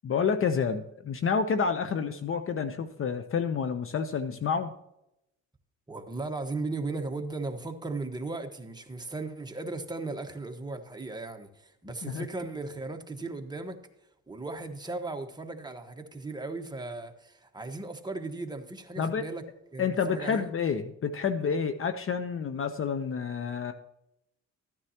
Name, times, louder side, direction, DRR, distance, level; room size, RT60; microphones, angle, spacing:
voice 1, 0.0-4.7 12.0-12.2 19.0-19.2 19.8-23.7, left 6 dB, 45° left, 0.8 m, -29 dB
voice 2, 5.9-13.8 14.3-19.4 19.7-20.5, right 3 dB, 15° right, 1.3 m, -37 dB
14.0 x 9.7 x 2.9 m
cardioid pair, 90°, 30 cm